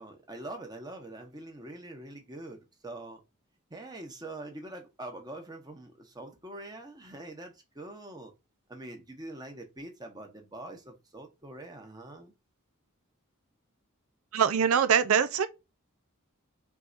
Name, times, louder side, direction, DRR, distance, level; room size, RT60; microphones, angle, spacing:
voice 1, 0.0-3.2 3.7-8.3 8.7-12.3, right 1 dB, 20° right, 1.1 m, -44 dB
voice 2, 14.3-15.5, right 7 dB, 80° right, 0.5 m, -23 dB
4.7 x 3.4 x 2.5 m
head